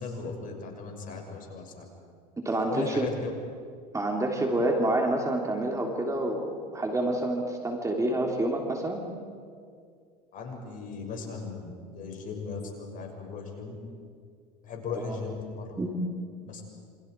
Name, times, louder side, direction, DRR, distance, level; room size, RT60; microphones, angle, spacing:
voice 1, 0.0-1.8 2.7-3.3 10.3-13.7 14.6-15.7 16.4-16.6, left 4 dB, 40° left, 2 dB, 6.4 m, -37 dB
voice 2, 2.4-3.1 3.9-9.0 14.9-15.2 15.8-15.9, right 1 dB, 15° right, 1 dB, 3.5 m, -28 dB
28.5 x 26.5 x 4.8 m, 2.2 s
hypercardioid pair, 100°, 20 cm